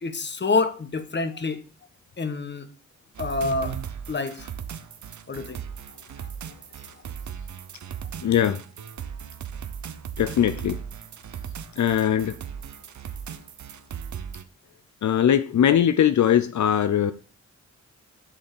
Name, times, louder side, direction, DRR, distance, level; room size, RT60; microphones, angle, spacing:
voice 1, 0.0-1.6 2.2-2.7 3.2-3.8 4.1-4.5 5.3-5.6 6.2-6.3, left 3 dB, 40° left, 1.2 m, -27 dB
sound 1, 3.1-14.4, right 8 dB, 80° right, 0.8 m, -37 dB
voice 2, 8.2-8.6 10.2-10.8 11.8-12.4 15.0-17.1, left 9 dB, 75° left, 0.6 m, -20 dB
7.4 x 5.5 x 6.8 m
wide cardioid pair, 115°, 29 cm